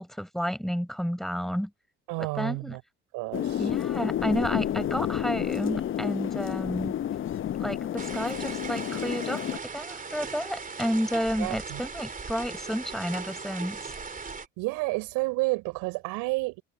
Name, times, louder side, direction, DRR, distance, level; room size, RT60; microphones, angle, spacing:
voice 1, 0.0-1.7 2.2-2.8 3.6-6.9 7.6-13.9, equal, ahead, 5.2 m, -31 dB
voice 2, 2.1-2.8 3.1-3.7 11.4-11.8 14.6-16.6, right 25 dB, 65° right, 5.3 m, -30 dB
sound 1, 3.3-9.6, left 11 dB, 35° left, 0.7 m, -30 dB
sound 2, 8.0-14.5, right 4 dB, 25° right, 3.4 m, -38 dB
hypercardioid pair, 65°, 35 cm